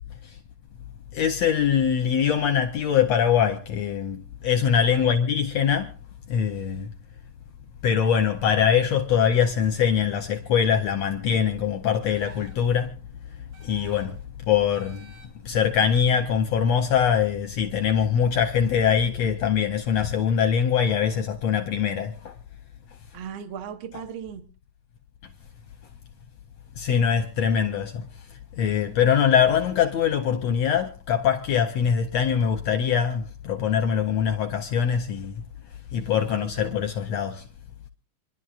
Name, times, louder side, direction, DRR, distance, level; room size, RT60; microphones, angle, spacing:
voice 1, 1.1-5.9 6.3-6.9 7.8-13.0 13.6-14.2 14.5-15.1 15.4-22.3 23.9-24.0 26.8-35.4 35.9-37.5, left 8 dB, 75° left, 1.6 m, -23 dB
sound 1, 12.0-12.7 13.5-14.2 14.7-15.5, right 4 dB, 85° right, 4.0 m, -52 dB
voice 2, 23.1-24.5 36.3-36.8, right 8 dB, 70° right, 1.2 m, -37 dB
27.0 x 11.5 x 2.4 m
omnidirectional pair, 3.7 m